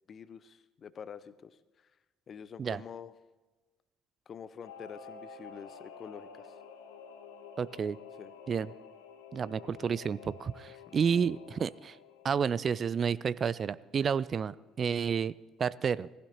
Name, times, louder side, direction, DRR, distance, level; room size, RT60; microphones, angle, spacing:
voice 1, 0.1-1.6 2.3-3.1 4.3-6.5 8.2-8.3 10.9-11.0, left 7 dB, 45° left, 15 dB, 0.6 m, -47 dB
Singing / Musical instrument, 4.6-14.6 15.0-15.1, left 6 dB, 75° left, 1.0 m, -51 dB
voice 2, 7.6-8.0 8.5-8.7 9.3-12.0 12.2-15.3 15.6-16.1, right 6 dB, 40° right, 19 dB, 0.3 m, -30 dB
18.0 x 15.5 x 2.9 m, 1.2 s
figure-of-eight pair, 50°, 0 cm